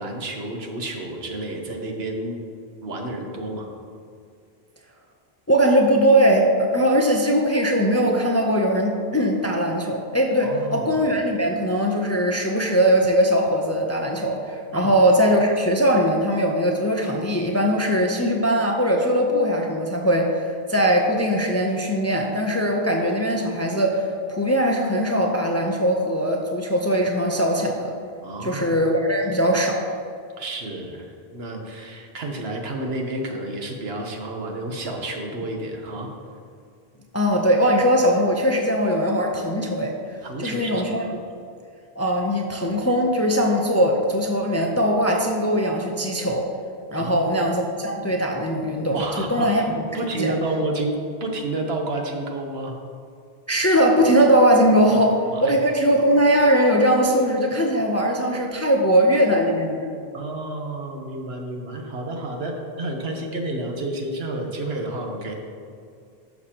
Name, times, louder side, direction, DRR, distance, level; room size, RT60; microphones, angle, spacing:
voice 1, 0.0-2.4 2.8-3.7 10.4-11.0 14.7-15.0 28.2-28.8 30.4-36.1 40.2-40.9 46.9-47.4 48.9-49.5 49.9-52.7 54.9-55.0 55.3-55.6 60.1-65.3, right 2 dB, 75° right, 2 dB, 1.3 m, -30 dB
voice 2, 5.5-27.9 28.4-29.8 37.1-39.9 40.4-41.0 42.0-46.5 46.9-49.0 49.3-49.8 50.2-50.3 53.5-55.2 55.4-59.9, equal, 20° left, 1 dB, 0.5 m, -20 dB
11.5 x 6.6 x 2.9 m, 2.3 s
omnidirectional pair, 1.1 m